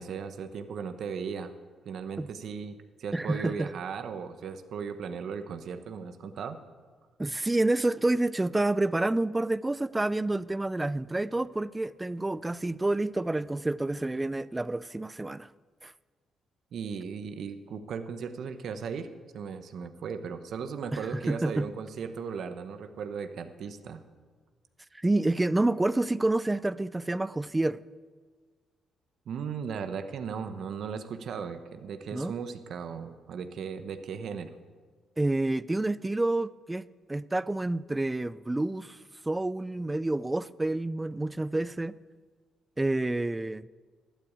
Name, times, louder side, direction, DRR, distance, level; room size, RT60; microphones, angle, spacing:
voice 1, 0.0-1.5 1.8-6.6 16.7-19.1 19.3-24.0 29.3-34.5, right 6 dB, 65° right, 1.1 m, -37 dB
voice 2, 3.1-3.7 7.2-15.5 15.8-15.9 20.9-21.7 24.9-27.8 32.1-32.3 35.2-36.8 37.1-39.0 39.3-41.9 42.8-43.7, right 2 dB, 15° right, 0.4 m, -28 dB
12.0 x 8.9 x 8.7 m
cardioid pair, 90°, 0 cm